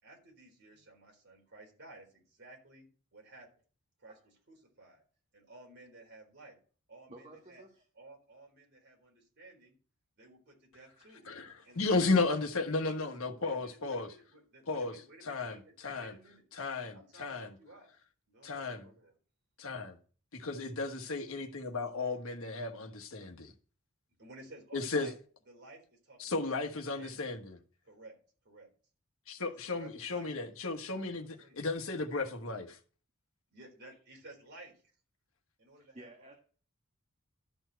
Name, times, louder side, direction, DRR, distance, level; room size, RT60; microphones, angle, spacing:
voice 1, 0.0-2.9 3.1-3.5 4.0-5.0 5.3-6.6 6.9-7.6 7.9-9.7 10.2-11.3 11.6-12.2 12.5-16.4 16.9-17.9 18.3-19.1 24.2-25.1 25.5-26.5 26.9-27.2 27.8-28.2 28.4-28.7 29.4-30.3 31.4-31.6 33.5-34.7 35.6-36.3, right 2 dB, 50° right, 4.0 m, -55 dB
voice 2, 7.1-7.8 35.8-36.3, right 2 dB, 30° right, 1.3 m, -53 dB
voice 3, 11.3-14.1 14.7-16.1 16.5-17.5 18.4-18.9 19.6-20.0 20.3-23.5 24.7-25.1 26.2-27.6 29.3-32.8, left 3 dB, 65° left, 1.3 m, -34 dB
12.0 x 4.5 x 7.9 m
head